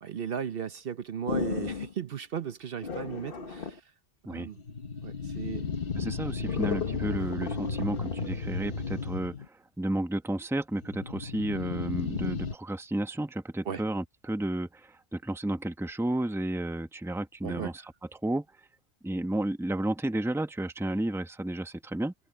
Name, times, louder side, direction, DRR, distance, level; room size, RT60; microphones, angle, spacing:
voice 1, 0.0-3.8 4.3-4.6 5.0-5.7 13.7-13.8 17.4-17.7, right 7 dB, 60° right, 0.9 m, -36 dB
sound 1, 1.3-1.9 2.8-3.8 4.6-9.5 10.8-12.6, left 5 dB, 60° left, 1.5 m, -33 dB
voice 2, 5.9-17.8 18.1-18.5 19.0-22.1, right 1 dB, 5° right, 0.9 m, -32 dB
omnidirectional pair, 1.1 m